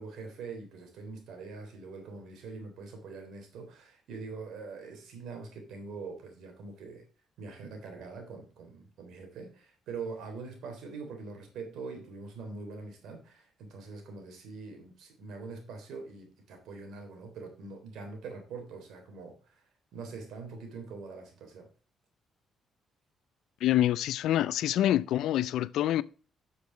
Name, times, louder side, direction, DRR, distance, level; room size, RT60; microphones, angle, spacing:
voice 1, 0.0-7.0 7.4-21.7, right 4 dB, 80° right, 3.5 m, -43 dB
voice 2, 23.6-26.0, left 13 dB, 80° left, 0.4 m, -26 dB
8.2 x 6.7 x 4.5 m
cardioid pair, 90°, 0 cm